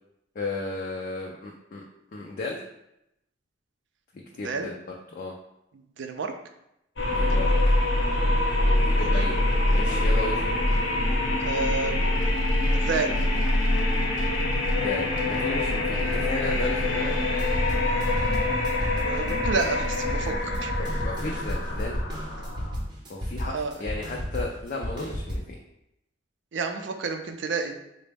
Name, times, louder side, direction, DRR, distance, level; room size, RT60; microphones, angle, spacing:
voice 1, 0.4-1.8 2.1-2.6 4.1-4.7 5.1-5.3 7.1-7.5 8.9-9.3 9.7-10.4 14.8-17.1 21.0-22.0 23.1-25.6, left 3 dB, 45° left, -1 dB, 0.4 m, -34 dB
voice 2, 6.0-6.3 7.3-7.5 8.9-9.2 11.4-12.2 12.7-13.2 19.0-20.7 23.4-23.8 26.5-27.8, right 4 dB, 70° right, 6 dB, 0.4 m, -30 dB
sound 1, 7.0-22.9, left 1 dB, 80° left, 0.7 m, -25 dB
sound 2, 17.4-25.4, equal, 25° right, 0.7 m, -33 dB
3.8 x 2.0 x 3.3 m, 0.83 s
head